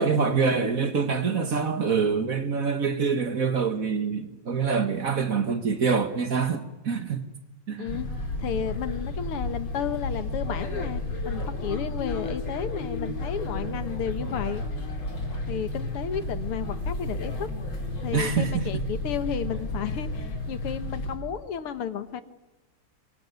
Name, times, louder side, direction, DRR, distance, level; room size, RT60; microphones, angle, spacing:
voice 1, 0.0-7.2 7.7-7.9 18.1-18.8, right 5 dB, 40° right, 9 dB, 1.7 m, -25 dB
voice 2, 7.8-8.1 8.4-14.6 15.5-17.5 18.0-22.2, left 8 dB, 80° left, 12 dB, 2.3 m, -32 dB
sound 1, 7.8-21.2, left 2 dB, 65° left, 5.0 m, -32 dB
24.5 x 23.0 x 9.4 m, 1.1 s
omnidirectional pair, 2.4 m